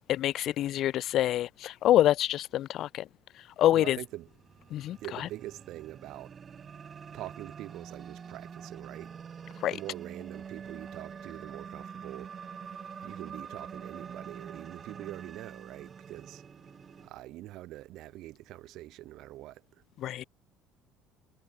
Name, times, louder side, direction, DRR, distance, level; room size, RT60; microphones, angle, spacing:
voice 1, 0.0-3.1 3.6-4.0 4.7-5.3 9.6-9.7 20.0-20.2, left 13 dB, 55° left, 1.0 m, -26 dB
voice 2, 3.7-4.3 5.0-6.4 7.1-9.1 9.7-12.3 13.0-16.4 17.0-19.6, right 16 dB, 60° right, 5.3 m, -44 dB
sound 1, 4.0-17.1, right 7 dB, 40° right, 2.6 m, -45 dB
hypercardioid pair, 65°, 0 cm